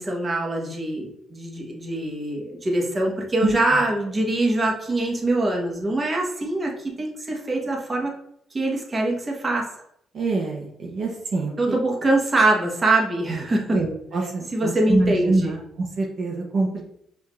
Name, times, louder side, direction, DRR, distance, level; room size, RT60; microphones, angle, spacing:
voice 1, 0.0-8.1 8.5-9.8 11.6-13.8 14.5-15.6, right 2 dB, 30° right, 0 dB, 1.1 m, -23 dB
voice 2, 10.1-11.5 13.3-13.4 13.7-16.8, right 3 dB, 55° right, -1 dB, 0.9 m, -25 dB
5.6 x 2.7 x 3.1 m, 0.73 s
cardioid pair, 90°, 0 cm